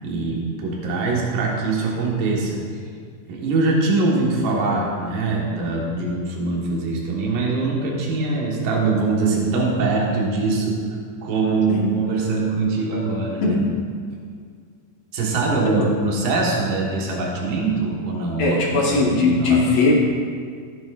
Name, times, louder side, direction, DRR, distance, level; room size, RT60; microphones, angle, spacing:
voice 1, 0.0-2.6 3.3-10.8 11.2-13.6 15.1-18.9 19.2-19.6, right 3 dB, 80° right, -3 dB, 3.1 m, -23 dB
voice 2, 18.4-19.9, left 3 dB, 60° left, -3 dB, 2.2 m, -19 dB
14.5 x 10.0 x 2.5 m, 2.1 s
omnidirectional pair, 3.8 m